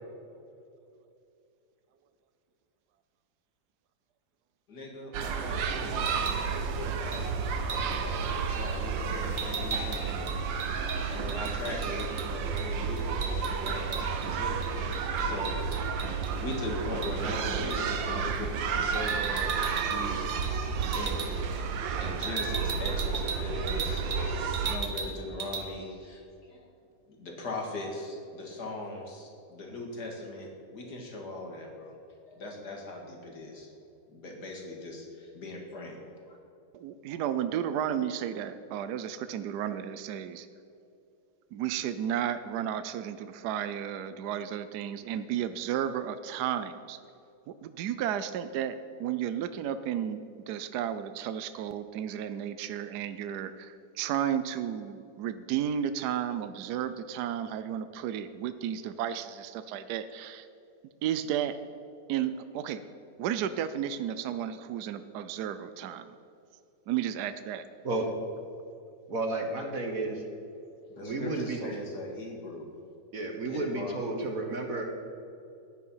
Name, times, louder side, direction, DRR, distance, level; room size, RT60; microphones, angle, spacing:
voice 1, 4.7-10.4 10.8-14.6 15.2-20.3 20.9-21.2 22.0-26.7 27.1-31.9 32.2-33.7 34.1-36.0 36.2-36.4 70.8-72.7 73.5-74.3, left 2 dB, 60° left, 0 dB, 2.8 m, -40 dB
sound 1, 5.1-24.8, right 5 dB, 90° right, 1.7 m, -31 dB
sound 2, 6.1-6.4 7.1-7.3 7.7-8.0 9.4-12.3 12.6-12.7 13.0-14.3 14.6-16.6 17.0-17.2 17.7-17.9 18.9-20.0 20.3-20.5 20.8-21.3 22.2-24.3 24.5-25.1 25.4-25.6, right 5 dB, 35° right, 1.4 m, -37 dB
voice 2, 36.7-40.5 41.5-47.0 47.5-60.5 61.0-61.6 62.1-62.8 63.2-66.1 66.9-67.7 71.6-71.7, right 9 dB, 70° right, 11 dB, 1.1 m, -33 dB
voice 3, 69.1-70.2 71.0-71.6 73.1-75.1, right 2 dB, 50° right, 3 dB, 1.7 m, -32 dB
15.0 x 10.5 x 5.7 m, 2.6 s
omnidirectional pair, 2.0 m